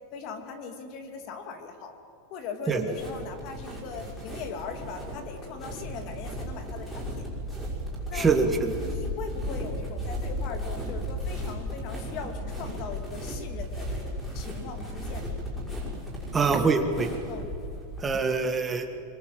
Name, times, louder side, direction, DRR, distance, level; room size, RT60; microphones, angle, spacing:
voice 1, 0.1-1.9 2.3-7.2 8.1-8.3 8.8-15.4 17.3-17.5, left 5 dB, 40° left, 6 dB, 2.6 m, -40 dB
sound 1, 2.7-18.0, equal, 5° left, 6.0 m, -35 dB
voice 2, 8.1-8.8 16.3-17.1 18.0-18.9, right 4 dB, 15° right, 5 dB, 1.8 m, -24 dB
26.0 x 22.5 x 7.9 m, 2.8 s
supercardioid pair, 165°, 0 cm